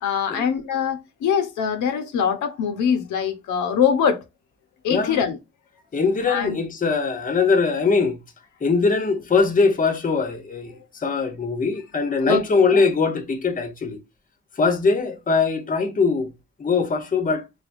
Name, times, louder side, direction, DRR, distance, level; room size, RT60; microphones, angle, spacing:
voice 1, 0.0-4.2 4.8-5.4 6.3-6.6 12.2-12.8, left 7 dB, 80° left, 0.9 m, -23 dB
voice 2, 5.9-8.2 8.6-14.0 14.6-16.3 16.6-17.4, left 4 dB, 25° left, 0.8 m, -21 dB
3.9 x 3.4 x 2.5 m
cardioid pair, 90°, 30 cm